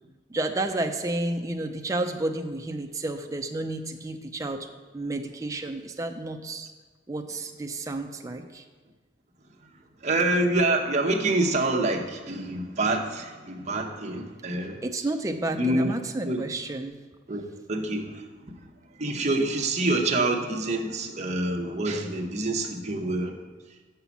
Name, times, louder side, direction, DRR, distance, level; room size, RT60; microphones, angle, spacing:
voice 1, 0.3-4.7 4.9-6.7 7.1-8.6 14.8-17.0, right 2 dB, 20° right, 3 dB, 0.4 m, -31 dB
voice 2, 10.0-14.8 15.6-15.9 16.3-16.4 17.3-17.4 17.7-18.3 18.6-18.7 19.0-23.4, right 2 dB, 40° right, -1 dB, 0.9 m, -26 dB
6.0 x 5.7 x 7.1 m, 1.4 s
head